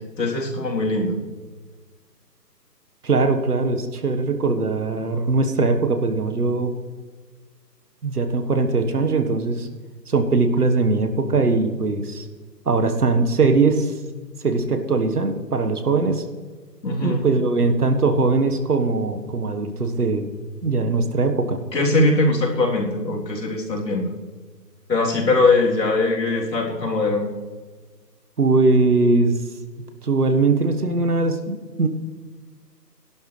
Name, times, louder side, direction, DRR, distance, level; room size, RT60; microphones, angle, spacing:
voice 1, 0.2-1.2 16.8-17.2 21.7-24.1 24.9-27.3, left 2 dB, 75° left, -1 dB, 3.6 m, -21 dB
voice 2, 3.0-6.8 8.0-9.7 10.1-12.3 12.6-13.9 14.4-16.2 17.0-20.3 20.6-21.6 28.4-29.3 30.0-31.9, right 3 dB, 65° right, 7 dB, 1.6 m, -20 dB
17.5 x 11.5 x 3.3 m, 1.4 s
hypercardioid pair, 175°, 50 cm